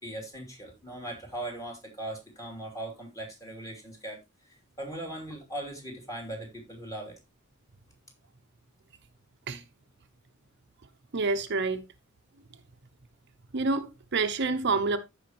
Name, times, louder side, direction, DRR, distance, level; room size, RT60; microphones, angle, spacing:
voice 1, 0.0-4.2 4.8-7.1, right 1 dB, 15° left, 2.9 m, -39 dB
voice 2, 11.1-11.8 13.5-15.0, right 3 dB, 55° right, 0.8 m, -27 dB
14.5 x 5.0 x 2.9 m
head